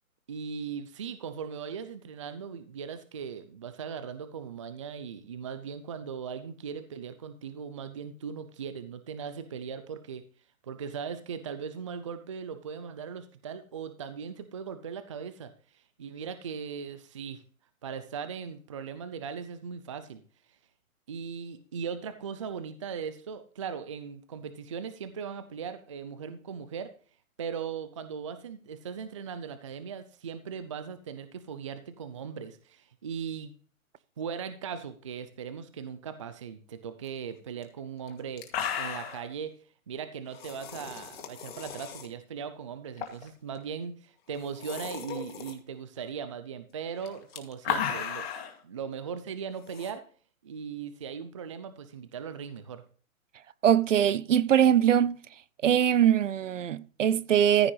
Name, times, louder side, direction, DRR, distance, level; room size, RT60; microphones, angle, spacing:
voice 1, 0.3-10.2 10.6-17.4 17.8-20.2 21.1-26.9 27.4-33.5 34.2-39.5 39.9-48.3 48.6-50.0 50.4-52.8, right 6 dB, 25° right, 0.5 m, -39 dB
sound 1, 37.6-37.7 38.1-38.2 38.4-39.3 40.3-42.1 43.0-43.3 43.6-43.7 44.3-45.5 47.0-48.5 49.7-49.9, left 8 dB, 45° left, 2.3 m, -35 dB
voice 2, 53.6-55.2 55.6-57.7, right 9 dB, 60° right, 0.8 m, -22 dB
14.5 x 6.0 x 4.0 m
hypercardioid pair, 155°, 43 cm